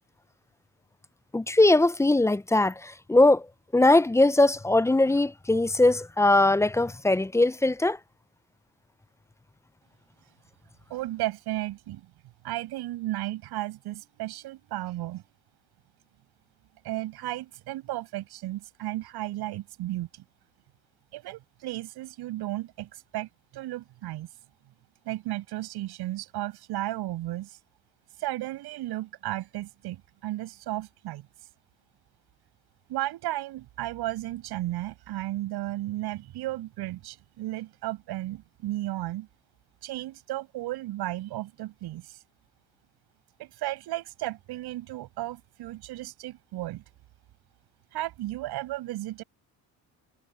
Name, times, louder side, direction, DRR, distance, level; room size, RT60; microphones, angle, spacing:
voice 1, 1.3-3.5 3.7-8.0, left 2 dB, 10° left, 0.5 m, -21 dB
voice 2, 10.9-12.1 12.4-15.2 16.8-20.2 21.1-24.3 25.0-27.6 28.2-31.3 32.9-39.3 39.8-42.2 43.4-46.8 47.9-49.2, right 16 dB, 80° right, 7.3 m, -34 dB
supercardioid pair, 75°, 38 cm